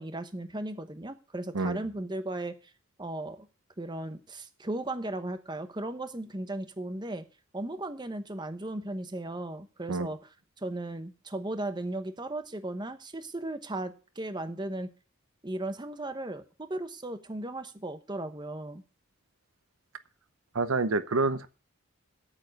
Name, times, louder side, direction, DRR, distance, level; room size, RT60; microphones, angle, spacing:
voice 1, 0.0-2.7 3.0-3.5 3.8-7.3 7.5-10.2 10.6-14.9 15.4-18.8, right 1 dB, 20° right, 9 dB, 1.0 m, -36 dB
voice 2, 20.5-21.5, right 3 dB, 85° right, 12 dB, 0.8 m, -27 dB
8.7 x 7.3 x 7.9 m, 0.35 s
head